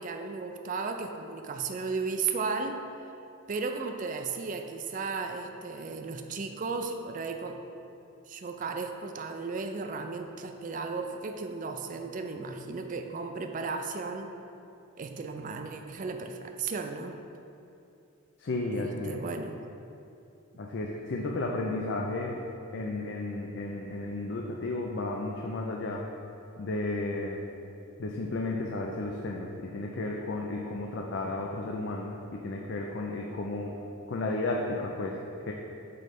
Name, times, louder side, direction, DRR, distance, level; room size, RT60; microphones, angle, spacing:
voice 1, 0.0-2.9 3.5-7.6 8.3-14.4 15.0-17.2 18.7-19.6, right 4 dB, 35° right, 5 dB, 0.3 m, -35 dB
voice 2, 18.4-19.2 20.6-22.4 22.7-26.1 26.6-27.4 28.0-33.8 34.1-35.2 35.5-35.6, left 2 dB, 50° left, 0 dB, 0.4 m, -33 dB
7.6 x 3.2 x 5.2 m, 2.7 s
head